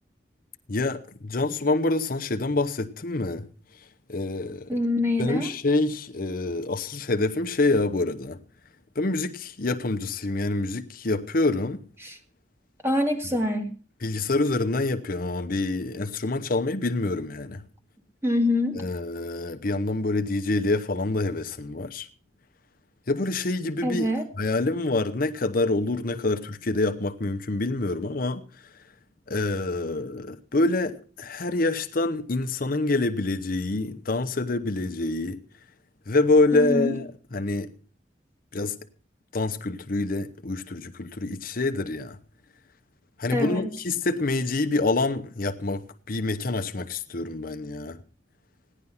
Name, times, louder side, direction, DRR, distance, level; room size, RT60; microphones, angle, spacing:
voice 1, 0.7-3.5 4.1-4.7 5.2-8.4 9.0-11.8 14.0-17.6 18.7-22.1 23.1-24.1 24.4-28.4 29.3-35.4 36.1-37.7 38.5-38.8 39.3-42.2 43.2-48.0, left 2 dB, 55° left, 0.9 m, -26 dB
voice 2, 4.7-5.5 12.0-12.2 12.8-13.7 18.2-18.8 23.8-24.2 36.5-37.0 43.3-43.7, left 1 dB, 15° right, 2.2 m, -25 dB
17.0 x 11.0 x 5.7 m
head